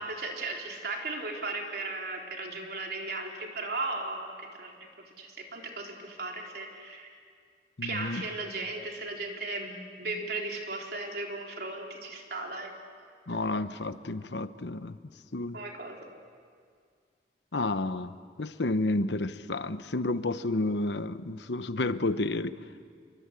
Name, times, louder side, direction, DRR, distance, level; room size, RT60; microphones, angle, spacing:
voice 1, 0.0-7.2 7.8-12.7 13.3-13.4 15.5-16.0, right 2 dB, 60° right, 1 dB, 4.0 m, -36 dB
voice 2, 7.8-8.2 13.3-15.0 15.3-15.6 17.5-18.1 18.4-22.6, left 2 dB, 75° left, 12 dB, 1.0 m, -30 dB
28.5 x 23.5 x 8.3 m, 2.1 s
head